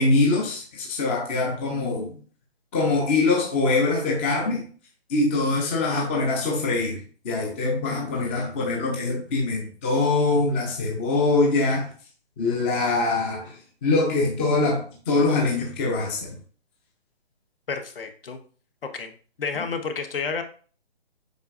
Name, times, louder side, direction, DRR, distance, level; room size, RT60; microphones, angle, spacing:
voice 1, 0.0-2.1 2.7-4.6 5.1-7.0 7.2-11.9 12.4-13.5 13.8-16.3, left 3 dB, 10° left, -1 dB, 0.6 m, -23 dB
voice 2, 17.7-18.4 18.8-19.1 19.4-20.4, left 5 dB, 60° left, 7 dB, 1.2 m, -30 dB
7.9 x 5.4 x 2.5 m, 0.41 s
hypercardioid pair, 155°, 33 cm